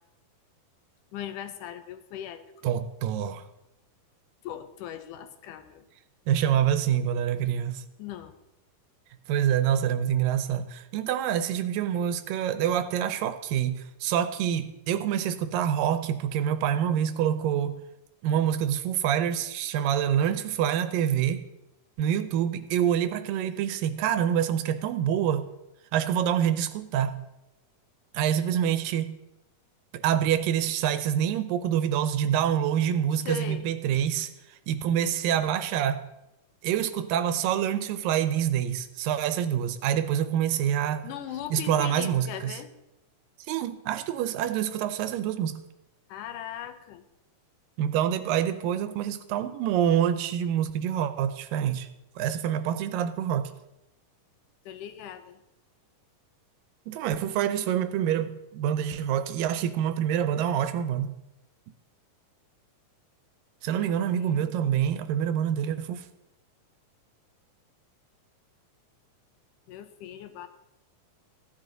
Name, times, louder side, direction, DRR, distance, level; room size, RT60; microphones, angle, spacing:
voice 1, 1.1-2.5 4.4-5.8 8.0-8.3 33.3-33.7 41.0-42.7 46.1-47.0 54.7-55.4 63.8-64.5 69.7-70.5, left 10 dB, 80° left, 9 dB, 2.2 m, -39 dB
voice 2, 2.6-3.4 6.3-7.8 9.3-17.8 18.2-21.4 22.0-25.4 25.9-27.2 28.1-29.1 29.9-36.1 36.6-41.0 41.5-42.6 43.5-45.6 47.8-51.9 52.2-53.5 56.9-61.1 63.6-66.1, right 9 dB, 85° right, 11 dB, 2.4 m, -26 dB
15.0 x 10.5 x 3.9 m, 0.90 s
omnidirectional pair, 3.9 m